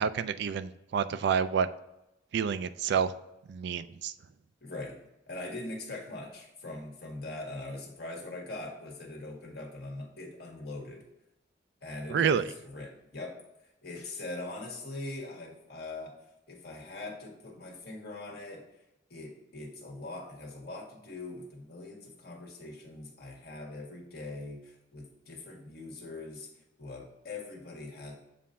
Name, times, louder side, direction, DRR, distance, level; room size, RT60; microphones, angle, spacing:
voice 1, 0.0-1.7 2.3-3.1 3.5-4.1 12.1-12.4, right 7 dB, 65° right, 13 dB, 0.3 m, -28 dB
voice 2, 4.6-5.0 5.3-11.0 11.8-16.1 16.5-18.6 19.1-26.5 26.8-28.1, left 2 dB, 60° left, 0 dB, 1.5 m, -42 dB
7.2 x 2.6 x 5.5 m, 0.90 s
head